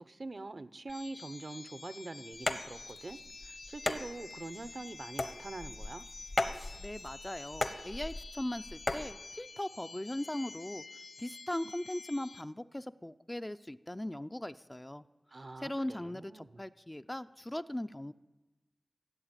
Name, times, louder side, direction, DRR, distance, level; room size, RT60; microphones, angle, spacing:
voice 1, 0.0-6.0 15.3-16.6, right 2 dB, 55° right, 13 dB, 0.7 m, -44 dB
sound 1, 0.9-12.4, left 3 dB, 70° left, 0.5 m, -49 dB
sound 2, 2.3-9.1, left 2 dB, 50° left, 1.1 m, -38 dB
voice 2, 6.8-10.8 11.2-15.0 15.6-18.1, left 1 dB, 20° left, 11 dB, 0.4 m, -39 dB
16.0 x 7.9 x 9.0 m, 1.1 s
wide cardioid pair, 65°, 0 cm